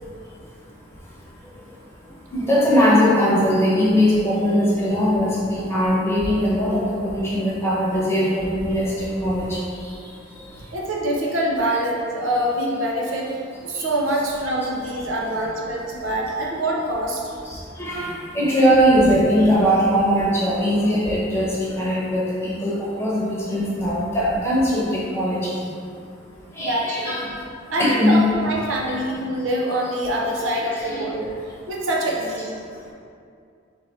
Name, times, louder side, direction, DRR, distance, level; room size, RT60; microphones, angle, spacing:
voice 1, 2.3-9.6 17.5-25.5 26.6-27.3 27.8-28.2 30.4-31.1, equal, 15° left, -7 dB, 1.0 m, -20 dB
voice 2, 10.7-13.3 13.7-17.4 26.6-27.2 27.7-31.3 31.7-32.6, right 1 dB, 85° right, -2 dB, 0.7 m, -25 dB
4.1 x 3.4 x 3.5 m, 2.4 s
head